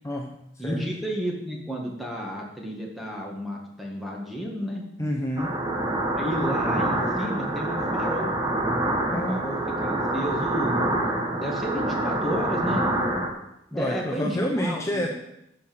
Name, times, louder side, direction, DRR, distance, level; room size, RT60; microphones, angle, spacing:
voice 1, 0.0-0.8 5.0-5.5 9.1-9.4 13.7-15.1, equal, 15° left, -1 dB, 0.8 m, -28 dB
voice 2, 0.6-4.8 6.1-8.3 9.1-12.9 13.7-15.1, equal, ahead, -1 dB, 1.9 m, -32 dB
sound 1, 5.4-13.3, right 1 dB, 20° right, 1.4 m, -26 dB
11.5 x 5.7 x 6.0 m, 0.82 s
head